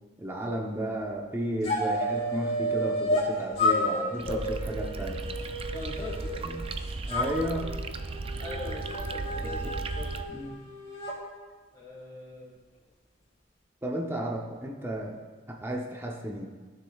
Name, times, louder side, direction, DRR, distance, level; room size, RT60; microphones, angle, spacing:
voice 1, 0.2-5.2 6.4-6.6 7.1-7.7 10.3-10.6 13.8-15.2 15.5-16.5, right 1 dB, 15° right, 0 dB, 0.7 m, -33 dB
sound 1, 1.6-3.3 3.6-6.7 7.1-11.2, left 1 dB, 35° left, 2.8 m, -31 dB
sound 2, 4.2-10.2, right 3 dB, 30° right, 0.4 m, -36 dB
voice 2, 5.7-6.4 8.4-10.1 11.7-12.6, left 2 dB, 20° left, -9 dB, 1.7 m, -41 dB
15.0 x 6.6 x 2.3 m, 1.4 s
head